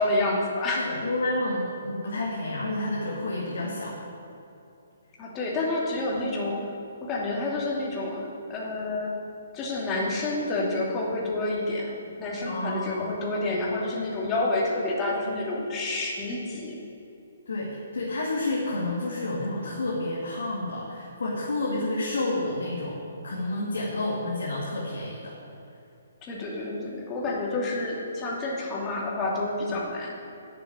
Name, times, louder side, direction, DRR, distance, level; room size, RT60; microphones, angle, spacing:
voice 1, 0.0-0.9 5.2-6.6 7.0-9.1 9.5-16.8 26.2-30.1, left 2 dB, 20° left, -3 dB, 2.6 m, -29 dB
voice 2, 0.8-4.0 12.4-13.1 17.5-25.4, left 2 dB, 65° left, -4 dB, 2.3 m, -30 dB
11.0 x 6.8 x 8.9 m, 2.7 s
figure-of-eight pair, 130°, 0 cm